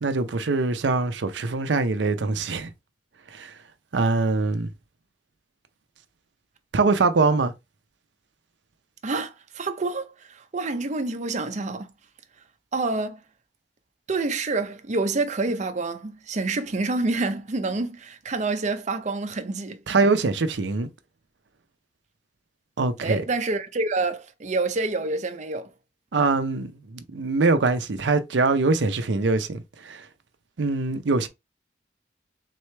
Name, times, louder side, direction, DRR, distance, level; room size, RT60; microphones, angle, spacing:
voice 1, 0.0-2.7 3.3-3.5 3.9-4.7 6.7-7.5 19.9-20.9 22.8-23.2 26.1-30.0 30.6-31.3, right 3 dB, 80° right, 0.6 m, -23 dB
voice 2, 9.0-11.9 12.7-13.2 14.1-19.8 23.0-25.7, right 3 dB, 40° right, 0.6 m, -27 dB
3.7 x 3.2 x 3.3 m
head